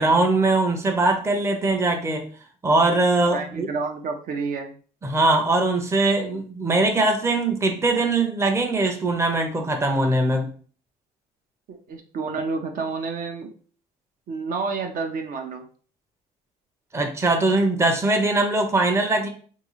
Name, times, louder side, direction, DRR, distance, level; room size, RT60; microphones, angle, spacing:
voice 1, 0.0-2.3 2.6-3.7 5.0-10.5 16.9-19.3, right 2 dB, 15° right, 4 dB, 0.6 m, -21 dB
voice 2, 3.3-4.7 11.7-13.5 14.3-15.7, right 4 dB, 55° right, 4 dB, 0.6 m, -29 dB
3.6 x 2.4 x 3.0 m, 0.43 s
cardioid pair, 110°, 17 cm